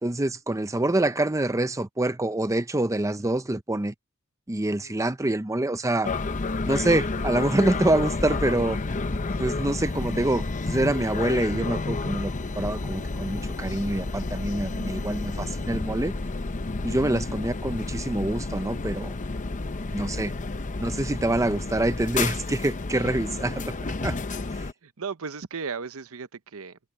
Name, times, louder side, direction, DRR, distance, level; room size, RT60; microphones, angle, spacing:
voice 1, 0.0-3.9 4.5-6.1 6.7-8.8 9.4-16.1 16.8-19.2 19.9-20.3 20.8-23.6 24.0-24.2 24.5-24.7, right 1 dB, 15° right, 0.7 m, -26 dB
sound 1, 6.0-24.7, left 3 dB, 35° left, 0.7 m, -30 dB
voice 2, 24.8-26.8, right 5 dB, 65° right, 0.8 m, -36 dB
head